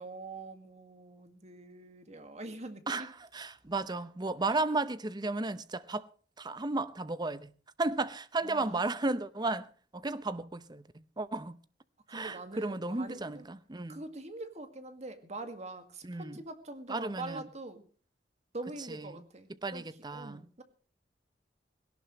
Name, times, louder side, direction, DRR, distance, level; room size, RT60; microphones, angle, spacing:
voice 1, 0.0-3.1 4.5-4.6 8.4-8.9 12.1-13.4 13.9-17.8 18.5-19.8 20.1-20.6, right 2 dB, 40° right, 2.0 m, -44 dB
voice 2, 2.9-6.1 6.4-7.5 7.8-11.6 12.1-14.0 16.0-16.4 16.9-17.5 18.9-19.2 19.6-20.5, right 2 dB, 25° right, 0.8 m, -34 dB
18.0 x 17.5 x 3.1 m
head